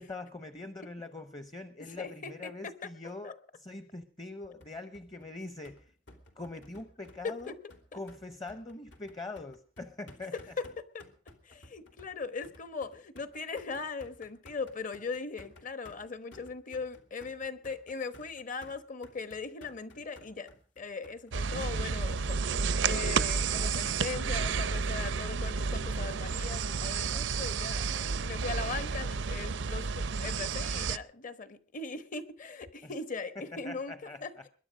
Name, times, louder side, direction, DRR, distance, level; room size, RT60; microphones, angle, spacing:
voice 1, 0.0-5.9 6.4-7.6 7.9-10.3 32.8-32.9 33.4-34.5, left 2 dB, 25° left, 11 dB, 0.8 m, -43 dB
voice 2, 1.9-2.7 3.2-3.3 7.2-7.5 7.9-8.0 10.6-11.1 11.4-20.5 20.8-33.9 34.2-34.5, left 4 dB, 45° left, 11 dB, 1.2 m, -39 dB
sound 1, 4.6-24.0, left 1 dB, 80° left, 2.7 m, -56 dB
sound 2, 21.3-31.0, right 5 dB, 85° right, 0.6 m, -31 dB
21.5 x 11.0 x 5.1 m, 0.42 s
head